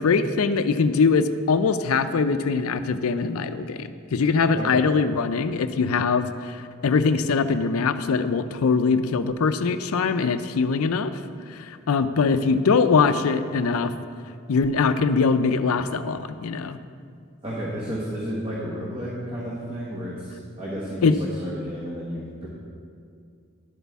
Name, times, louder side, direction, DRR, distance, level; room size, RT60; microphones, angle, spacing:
voice 1, 0.0-11.1 11.5-13.9 14.5-16.8 21.0-21.2, left 4 dB, 80° left, 11 dB, 0.4 m, -22 dB
voice 2, 4.6-4.9 17.4-22.5, equal, 25° right, -6 dB, 1.2 m, -32 dB
11.5 x 8.2 x 3.5 m, 2.3 s
head